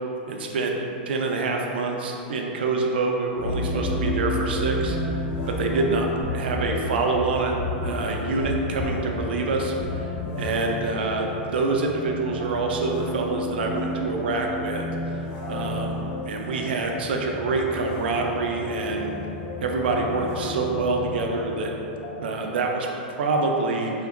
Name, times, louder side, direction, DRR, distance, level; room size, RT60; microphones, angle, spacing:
voice 1, 0.3-0.7 1.1-7.5 7.8-9.7 10.0-10.1 10.4-14.9 15.5-19.2 19.6-21.7 22.2-23.9, right 3 dB, 85° right, 1 dB, 0.4 m, -26 dB
sound 1, 3.4-22.9, left 1 dB, 60° left, 0.9 m, -31 dB
3.6 x 2.5 x 2.4 m, 2.8 s
supercardioid pair, 135°, 5 cm